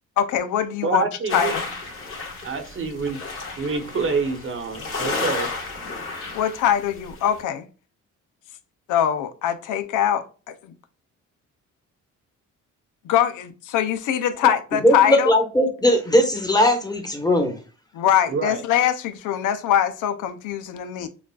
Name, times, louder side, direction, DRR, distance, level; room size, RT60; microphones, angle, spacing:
voice 1, 0.2-1.1 1.3-1.6 6.3-7.7 8.9-10.7 13.0-15.3 17.9-21.1, left 10 dB, 85° left, 0.6 m, -22 dB
voice 2, 0.8-1.6 2.4-3.2 3.6-5.5 18.3-18.6, right 4 dB, 45° right, 1.0 m, -26 dB
sound 1, 1.3-7.4, left 3 dB, 45° left, 1.9 m, -32 dB
voice 3, 14.8-17.6, left 1 dB, 10° left, 1.2 m, -19 dB
7.0 x 2.4 x 2.3 m
cardioid pair, 90°, 30 cm